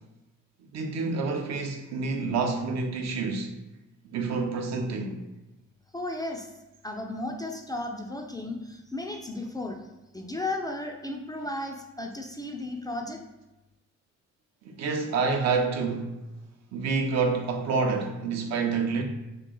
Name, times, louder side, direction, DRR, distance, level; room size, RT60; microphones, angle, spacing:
voice 1, 0.7-3.5 4.1-5.2 14.6-16.2 16.7-19.0, right 4 dB, 60° right, 0.6 m, -28 dB
voice 2, 5.9-6.5 6.8-9.8 10.1-13.2, left 2 dB, 15° left, 0.3 m, -34 dB
3.0 x 2.5 x 3.7 m
cardioid pair, 90°, 30 cm